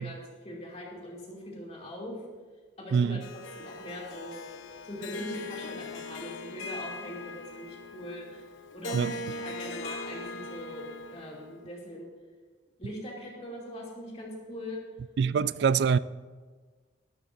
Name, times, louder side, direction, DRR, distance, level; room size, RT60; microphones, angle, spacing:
voice 1, 0.0-2.2 2.8-3.2 3.5-4.6 4.8-8.4 8.7-12.1 12.8-14.8, left 1 dB, 35° left, 2.7 m, -41 dB
voice 2, 2.9-3.3 8.9-9.2 15.2-16.0, right 6 dB, 60° right, 0.3 m, -25 dB
Harp, 3.2-11.6, left 2 dB, 90° left, 0.8 m, -40 dB
19.0 x 11.5 x 2.6 m
head